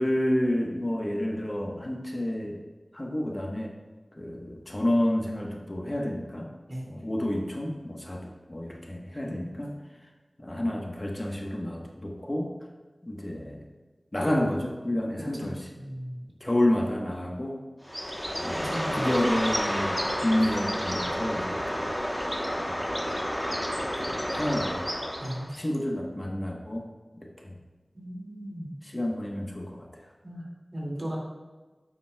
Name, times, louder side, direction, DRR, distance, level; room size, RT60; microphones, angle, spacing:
voice 1, 0.0-2.6 2.9-3.7 4.2-6.5 6.9-8.2 8.5-9.7 10.4-12.5 13.0-13.7 14.1-15.7 16.4-17.6 18.4-21.9 22.6-22.8 24.0-24.8 25.5-26.9 27.1-27.5 28.9-29.9, left 1 dB, 30° left, 0 dB, 1.1 m, -29 dB
voice 2, 6.7-7.0 9.1-9.2 15.2-16.2 18.5-19.1 25.2-25.6 27.9-28.7 30.2-30.5 30.7-31.2, equal, 55° right, -3 dB, 2.2 m, -37 dB
Bird, 17.8-25.6, equal, 5° left, 1.0 m, -30 dB
9.2 x 7.2 x 2.3 m, 1.3 s
wide cardioid pair, 50°, 0 cm